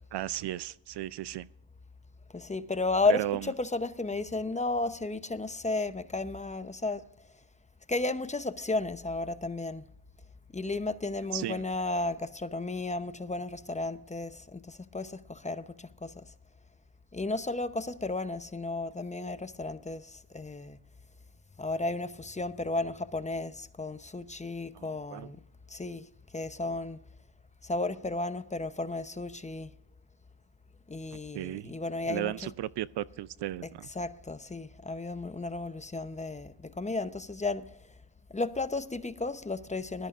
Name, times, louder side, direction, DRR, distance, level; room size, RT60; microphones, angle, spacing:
voice 1, 0.1-1.5 3.1-3.5 11.3-11.6 24.7-25.3 31.3-31.7 32.1-33.9, right 14 dB, 55° right, 0.5 m, -35 dB
voice 2, 2.3-7.0 7.9-9.8 10.5-16.2 17.1-20.8 21.6-25.4 25.7-26.1 26.3-27.0 27.6-29.7 30.9-32.5 33.9-37.7 38.3-40.1, left 2 dB, 15° left, 0.7 m, -33 dB
21.0 x 13.5 x 2.5 m
cardioid pair, 80°, 49 cm